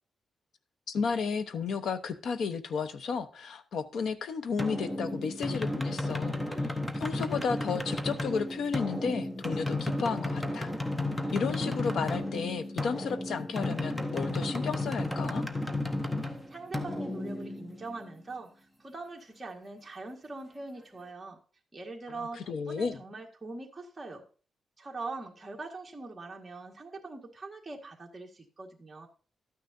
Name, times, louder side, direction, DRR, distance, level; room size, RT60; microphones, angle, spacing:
voice 1, 0.9-10.7 11.3-15.4 22.2-23.0, left 5 dB, 70° left, 0.9 m, -33 dB
sound 1, 4.6-18.1, left 1 dB, 10° left, 0.8 m, -33 dB
voice 2, 16.5-21.4 21.7-24.2 24.8-29.1, right 3 dB, 15° right, 1.7 m, -42 dB
12.5 x 9.4 x 2.7 m
wide cardioid pair, 150°, 0 cm